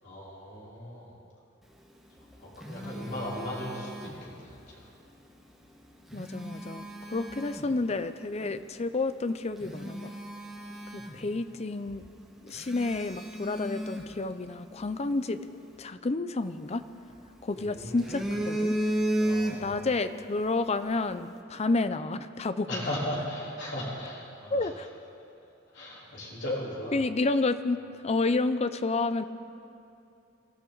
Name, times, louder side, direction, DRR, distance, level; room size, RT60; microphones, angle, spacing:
voice 1, 0.0-1.2 2.4-4.9 11.0-11.3 17.6-18.3 19.2-20.0 22.7-24.7 25.7-27.0, left 1 dB, 65° left, -6 dB, 3.7 m, -38 dB
Telephone, 2.1-4.6 5.9-7.8 8.4-8.6 9.1-9.2 9.6-11.6 11.9-12.0 12.5-14.9 16.4-17.4 17.8-19.9 20.2-20.5, right 1 dB, ahead, 1.6 m, -34 dB
voice 2, 6.1-10.1 10.9-12.0 12.4-15.4 15.8-16.8 17.4-18.8 19.6-22.8 24.5-24.9 26.9-29.2, left 3 dB, 35° left, 11 dB, 0.6 m, -30 dB
26.0 x 13.5 x 4.0 m, 2.7 s
head